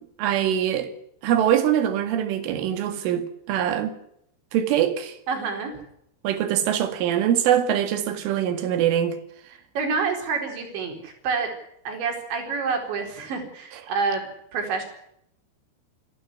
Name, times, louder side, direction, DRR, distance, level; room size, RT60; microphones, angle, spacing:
voice 1, 0.2-0.9 1.2-3.9 4.5-5.2 6.2-9.2, right 10 dB, 80° right, 4.6 m, -23 dB
voice 2, 5.3-5.7 9.7-11.5 11.8-14.2 14.5-14.8, right 5 dB, 65° right, 6.8 m, -27 dB
27.5 x 13.0 x 9.8 m
omnidirectional pair, 5.6 m